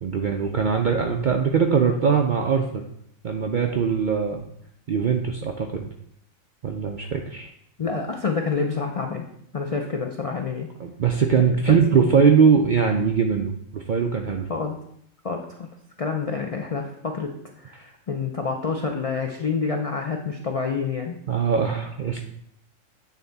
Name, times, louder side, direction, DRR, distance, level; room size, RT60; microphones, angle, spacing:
voice 1, 0.0-2.8 3.2-4.4 4.9-5.9 6.6-7.5 10.8-14.5 21.3-22.2, right 6 dB, 65° right, 3 dB, 0.5 m, -21 dB
voice 2, 7.8-9.2 9.5-10.7 11.5-11.8 14.5-14.8 15.2-15.7 16.0-17.3 17.6-21.2, left 5 dB, 65° left, 2 dB, 0.3 m, -28 dB
8.3 x 3.4 x 3.9 m, 0.70 s
omnidirectional pair, 1.4 m